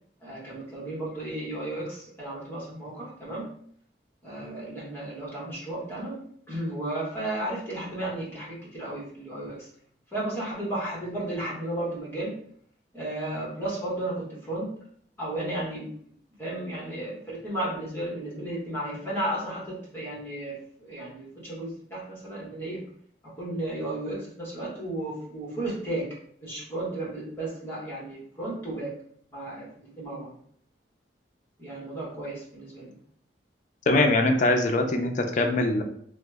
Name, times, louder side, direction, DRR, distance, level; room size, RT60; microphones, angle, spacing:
voice 1, 0.2-3.5 4.2-9.7 10.1-12.4 12.9-14.7 15.2-15.9 16.4-22.8 23.2-26.1 26.4-28.9 29.3-30.3 31.6-32.9, right 1 dB, 15° left, -7 dB, 1.1 m, -34 dB
voice 2, 33.9-35.8, left 2 dB, 45° left, 4 dB, 0.4 m, -22 dB
3.1 x 2.0 x 3.3 m, 0.63 s
head